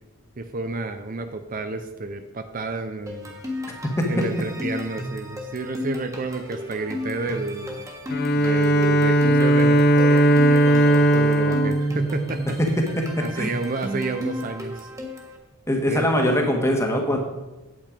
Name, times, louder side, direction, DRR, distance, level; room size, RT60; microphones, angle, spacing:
voice 1, 0.4-3.4 4.1-7.8 8.3-12.6 13.2-14.9 15.9-16.1, right 3 dB, 40° right, 8 dB, 0.5 m, -30 dB
sound 1, 3.1-15.4, left 1 dB, 15° right, 1.5 m, -34 dB
Bowed string instrument, 8.1-12.9, right 1 dB, 45° left, 0.7 m, -18 dB
voice 2, 13.0-13.5 15.7-17.2, equal, 10° left, 2 dB, 1.4 m, -22 dB
8.8 x 8.7 x 5.1 m, 1.1 s
head